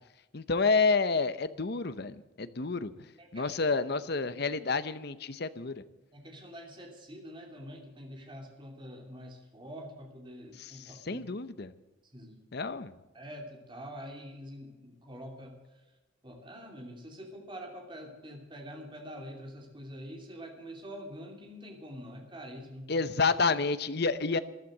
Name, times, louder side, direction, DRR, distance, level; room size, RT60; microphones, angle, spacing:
voice 1, 0.3-2.9 3.3-5.8 10.6-11.7 12.5-12.9 22.9-24.4, left 4 dB, 50° left, 13 dB, 0.8 m, -29 dB
voice 2, 3.2-3.5 6.1-11.2 12.1-12.4 13.1-15.6 16.2-22.9, equal, 25° right, 2 dB, 2.8 m, -45 dB
13.5 x 11.5 x 7.8 m, 1.1 s
head